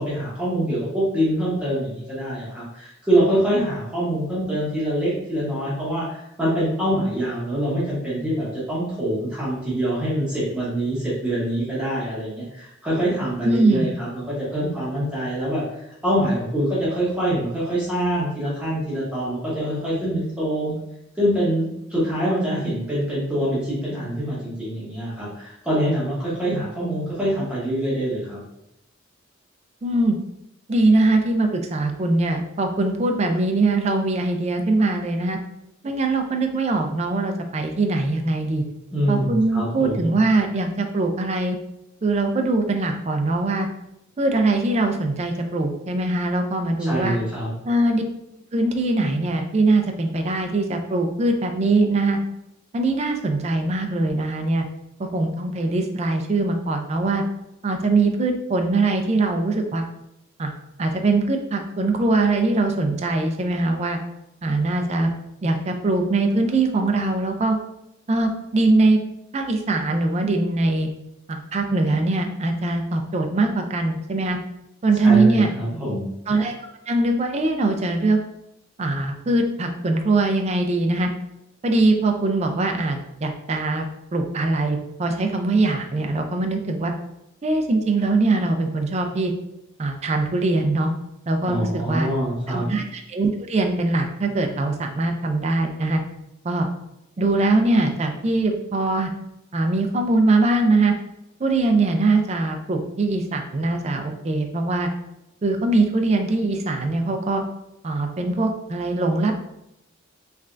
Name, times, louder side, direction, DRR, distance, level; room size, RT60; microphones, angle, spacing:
voice 1, 0.0-20.7 21.2-28.4 38.9-40.0 46.8-47.5 75.0-76.1 91.5-92.7, right 1 dB, 5° right, -9 dB, 0.9 m, -25 dB
voice 2, 13.4-13.9 29.8-30.2 30.7-35.4 35.8-38.6 39.1-41.6 42.0-43.7 44.2-47.2 47.7-48.0 48.5-52.2 52.7-54.6 55.0-57.2 57.6-59.8 60.4-60.5 60.8-64.0 64.4-65.1 65.4-67.6 68.1-69.0 69.3-70.9 71.3-74.4 74.8-75.5 76.3-76.5 76.9-78.2 78.8-81.1 81.6-86.9 87.4-89.3 89.8-90.9 91.3-92.1 92.5-96.0 96.4-96.7 97.2-99.1 99.5-100.9 101.4-104.9 105.4-107.4 107.8-109.4, right 2 dB, 30° right, 4 dB, 0.4 m, -22 dB
3.3 x 3.2 x 2.5 m, 0.83 s
head